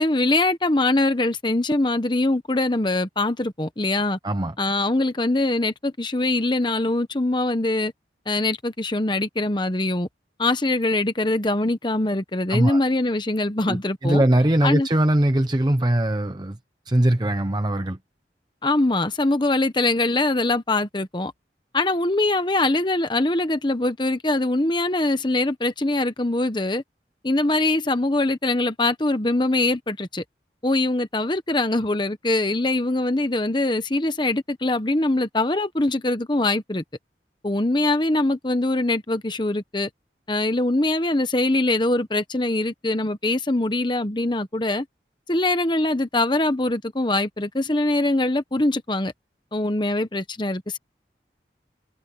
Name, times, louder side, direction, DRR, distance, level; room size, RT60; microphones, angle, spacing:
voice 1, 0.0-4.2 4.6-7.9 8.3-10.1 10.4-14.2 14.6-14.9 18.6-21.3 21.7-26.8 27.2-30.2 30.6-36.8 37.4-39.9 40.3-44.8 45.3-49.1 49.5-50.8, left 2 dB, 25° left, 1.0 m, -23 dB
voice 2, 4.2-4.5 12.5-12.8 13.7-16.6 16.9-18.0, right 1 dB, 25° right, 0.8 m, -21 dB
head